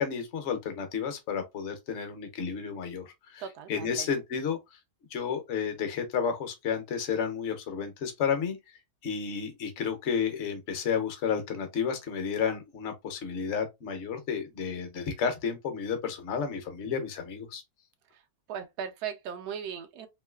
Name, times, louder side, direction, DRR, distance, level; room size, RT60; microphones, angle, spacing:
voice 1, 0.0-3.4 3.7-4.6 5.1-8.6 9.0-17.6, left 6 dB, 55° left, 0.9 m, -31 dB
voice 2, 3.4-4.1 18.1-18.2 18.5-20.1, right 8 dB, 85° right, 1.1 m, -38 dB
3.0 x 2.7 x 2.2 m
omnidirectional pair, 1.6 m